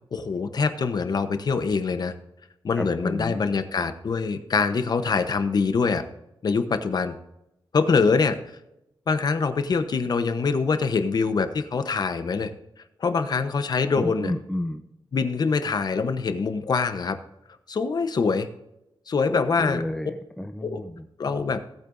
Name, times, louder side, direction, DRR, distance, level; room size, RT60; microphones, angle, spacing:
voice 1, 0.1-2.1 2.6-6.0 6.4-7.1 7.7-8.4 9.1-12.5 13.0-14.3 15.1-17.2 17.7-18.5 19.1-19.8 20.6-20.8 21.2-21.6, left 4 dB, 50° left, 9 dB, 0.9 m, -24 dB
voice 2, 2.8-3.4 14.0-14.8 19.3-21.0, left 1 dB, 5° left, 6 dB, 0.5 m, -31 dB
18.0 x 8.5 x 2.6 m, 0.88 s
wide cardioid pair, 170°, 9 cm